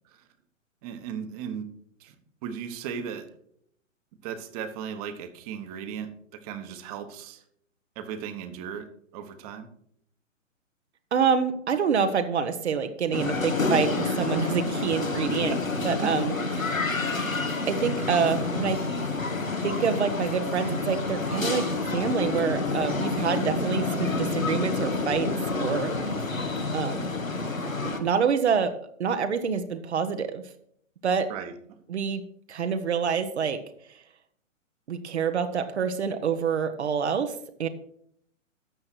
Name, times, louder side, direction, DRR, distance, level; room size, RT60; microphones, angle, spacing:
voice 1, 0.8-1.7 2.0-2.1 2.4-3.2 4.2-7.4 8.0-8.9 9.1-9.7 15.5-15.6 16.0-16.1 31.3-31.5, right 8 dB, 30° right, 10 dB, 1.3 m, -36 dB
voice 2, 11.1-15.5 15.8-16.8 17.7-18.8 19.6-21.7 21.9-25.3 25.5-26.1 26.7-27.1 28.0-28.7 29.0-30.4 31.0-31.3 31.9-32.2 32.5-33.6 34.9-37.3 37.6-37.7, right 6 dB, 55° right, 8 dB, 1.2 m, -27 dB
sound 1, 13.1-28.0, left 3 dB, 85° left, 1.9 m, -28 dB
12.5 x 7.6 x 4.6 m, 0.67 s
figure-of-eight pair, 120°, 39 cm